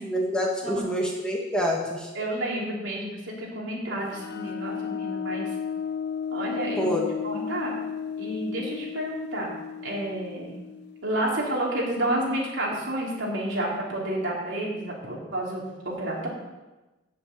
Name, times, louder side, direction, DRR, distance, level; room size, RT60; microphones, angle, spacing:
voice 1, 0.0-2.1 6.8-7.1, equal, 5° left, -2 dB, 1.4 m, -27 dB
voice 2, 2.1-5.5 6.3-7.0 7.2-7.7 8.2-9.5 9.8-10.6 11.0-16.3, right 1 dB, 65° right, -3 dB, 3.3 m, -30 dB
sound 1, 4.1-11.5, left 7 dB, 55° left, 0.5 m, -34 dB
8.7 x 7.6 x 8.1 m, 1.1 s
head